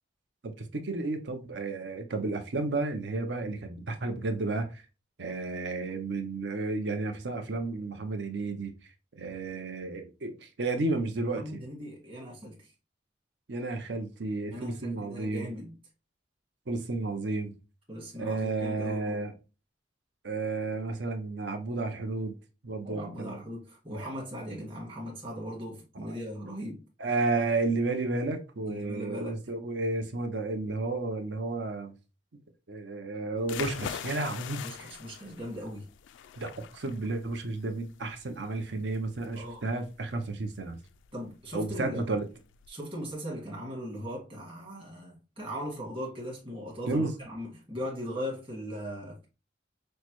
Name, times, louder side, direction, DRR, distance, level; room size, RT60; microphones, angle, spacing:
voice 1, 0.4-4.8 5.2-8.7 9.2-11.6 13.5-15.5 16.7-17.6 18.2-19.3 20.2-22.3 22.6-23.4 23.9-24.1 27.0-31.9 32.7-34.9 36.4-40.8 41.5-42.2 46.9-47.1, right 3 dB, 65° right, 0.7 m, -32 dB
voice 2, 11.4-12.7 14.5-15.7 17.9-19.3 22.8-26.8 28.7-29.4 34.6-35.9 39.3-39.6 41.1-42.1 42.7-49.3, equal, 30° right, 1.7 m, -39 dB
sound 1, 33.4-42.7, left 9 dB, 90° left, 0.3 m, -44 dB
6.3 x 2.1 x 3.0 m
head